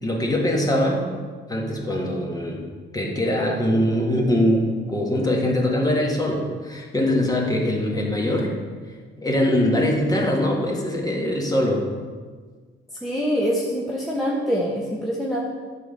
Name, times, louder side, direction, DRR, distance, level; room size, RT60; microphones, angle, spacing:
voice 1, 0.0-1.0 1.5-2.6 2.9-8.5 9.2-11.8, left 1 dB, 20° left, -2 dB, 1.9 m, -22 dB
voice 2, 13.0-15.4, equal, ahead, -5 dB, 1.1 m, -24 dB
9.5 x 3.8 x 6.7 m, 1.5 s
cardioid pair, 90°, 20 cm